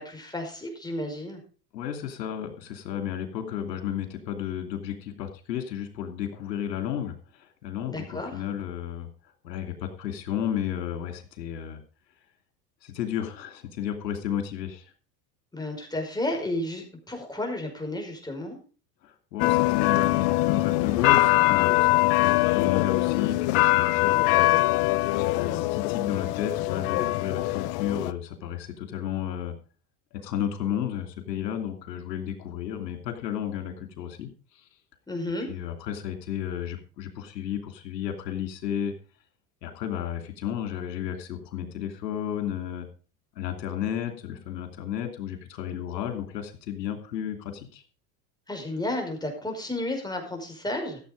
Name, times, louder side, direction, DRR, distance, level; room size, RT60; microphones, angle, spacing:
voice 1, 0.0-1.4 7.9-8.4 15.5-18.6 35.1-35.5 48.5-51.0, left 1 dB, 10° left, 2 dB, 5.2 m, -32 dB
voice 2, 1.7-9.1 9.4-11.8 12.8-14.9 19.0-29.5 30.1-34.3 35.5-38.9 39.6-42.9 43.4-47.8, left 10 dB, 85° left, 6 dB, 2.8 m, -33 dB
sound 1, 19.4-28.1, left 19 dB, 65° left, 0.9 m, -23 dB
14.5 x 7.8 x 5.2 m, 0.38 s
hypercardioid pair, 90°, 48 cm